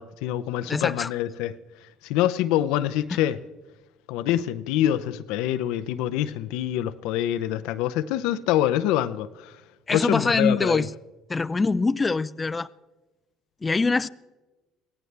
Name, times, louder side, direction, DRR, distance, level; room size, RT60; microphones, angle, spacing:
voice 1, 0.0-1.6 2.0-3.4 4.1-9.5 9.9-10.8, left 12 dB, 80° left, 0.7 m, -25 dB
voice 2, 0.7-1.1 9.9-10.9 11.3-12.7 13.6-14.1, left 3 dB, 25° left, 0.5 m, -23 dB
23.5 x 17.0 x 3.4 m
supercardioid pair, 70°, 0 cm